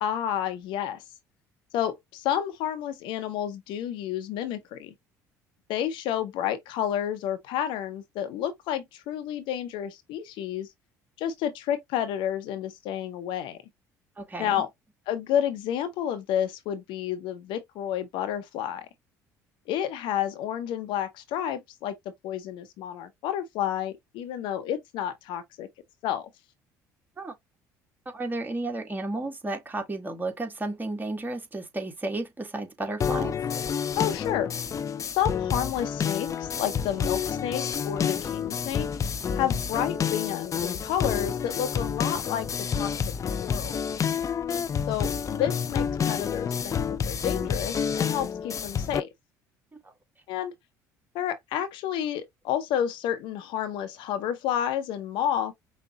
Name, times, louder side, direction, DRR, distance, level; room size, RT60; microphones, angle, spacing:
voice 1, 0.0-1.0 1.7-4.9 5.7-10.7 11.2-13.6 14.4-14.7 15.1-18.9 19.7-21.9 22.2-25.7 26.0-26.3 34.0-34.5 35.1-38.9 39.4-42.5 42.7-42.9 43.4-44.0 44.9-49.1 50.3-50.5 51.1-55.5, left 10 dB, 65° left, 0.9 m, -30 dB
voice 2, 14.2-14.6 27.2-27.3 28.1-33.4 49.8-49.9, right 2 dB, 20° right, 1.7 m, -33 dB
sound 1, 33.0-49.0, left 7 dB, 35° left, 0.6 m, -29 dB
5.7 x 2.2 x 2.8 m
hypercardioid pair, 60°, 9 cm